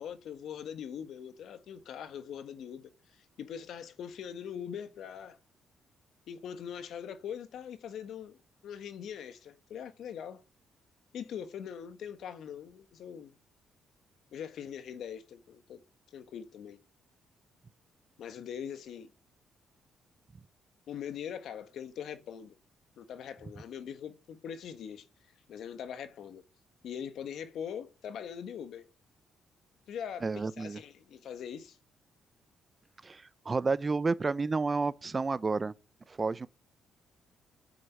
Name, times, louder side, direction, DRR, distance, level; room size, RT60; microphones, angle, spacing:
voice 1, 0.0-5.4 6.3-10.4 11.1-13.3 14.3-15.8 16.1-16.8 18.2-19.1 20.9-22.6 23.0-25.0 25.5-26.4 26.8-28.9 29.9-31.8, left 8 dB, 70° left, 1.4 m, -42 dB
voice 2, 30.2-30.8 33.0-35.7 36.1-36.5, right 4 dB, 30° right, 0.7 m, -30 dB
9.6 x 7.7 x 8.9 m
cardioid pair, 90°, 0 cm